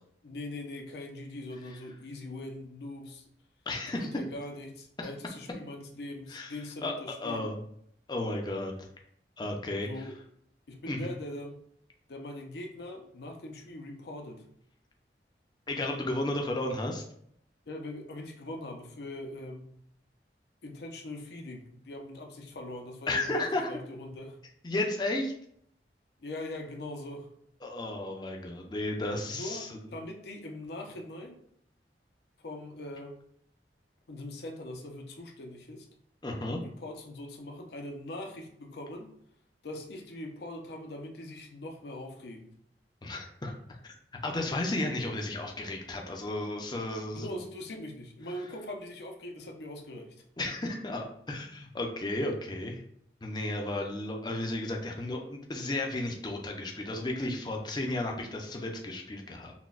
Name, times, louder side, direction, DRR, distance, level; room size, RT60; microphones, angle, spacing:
voice 1, 0.2-3.3 3.8-7.5 9.8-10.2 10.7-11.5 12.1-14.5 17.7-19.8 20.6-24.4 26.2-27.3 29.3-31.4 32.4-33.2 34.1-35.9 36.6-39.1 39.6-42.5 47.1-50.2, left 1 dB, 65° left, 3 dB, 0.6 m, -41 dB
voice 2, 3.7-4.1 5.0-5.1 6.3-6.5 6.8-7.6 8.1-8.9 9.4-10.0 10.9-11.1 15.7-17.0 23.1-23.7 24.6-25.3 27.6-29.8 36.2-36.6 43.0-43.5 43.8-43.9 44.2-47.3 50.4-52.8 53.2-59.5, left 2 dB, 25° left, 1 dB, 0.5 m, -33 dB
5.8 x 2.2 x 2.4 m, 0.67 s
head